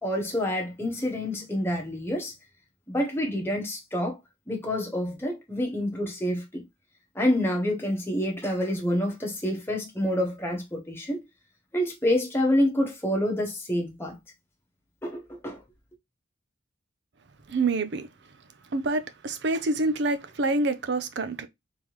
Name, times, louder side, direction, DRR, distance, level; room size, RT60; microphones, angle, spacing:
voice 1, 0.0-2.3 2.9-4.2 4.5-6.6 7.1-11.2 11.7-14.1 15.0-15.6, left 1 dB, 10° left, 1.1 m, -27 dB
voice 2, 17.5-18.1 18.7-21.5, right 2 dB, 60° right, 0.6 m, -27 dB
3.6 x 3.4 x 3.1 m
head